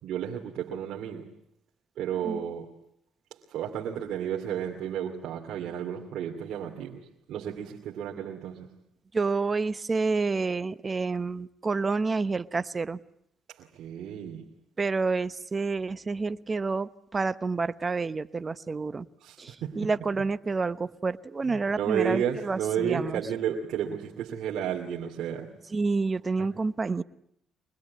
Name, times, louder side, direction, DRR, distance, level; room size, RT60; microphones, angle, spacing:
voice 1, 0.0-1.3 2.0-2.8 3.3-8.8 13.5-14.5 19.2-19.9 21.5-25.6 26.4-26.5, right 8 dB, 80° right, 2.5 m, -32 dB
voice 2, 9.1-13.0 14.8-19.1 19.4-23.2 25.7-27.0, right 4 dB, 30° right, 0.9 m, -29 dB
24.5 x 21.0 x 9.5 m
cardioid pair, 90°, 0 cm